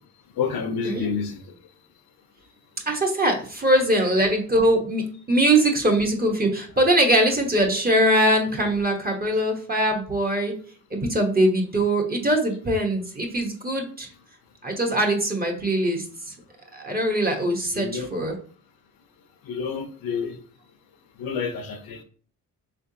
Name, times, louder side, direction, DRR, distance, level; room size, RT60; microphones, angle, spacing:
voice 1, 0.4-1.4 17.7-18.1 19.4-20.4 21.2-22.0, left 6 dB, 75° left, 0.9 m, -28 dB
voice 2, 2.9-10.5 10.9-14.1 14.6-16.3 16.7-18.3, right 1 dB, 25° right, 1.1 m, -22 dB
4.4 x 3.4 x 2.8 m
cardioid pair, 90°, 36 cm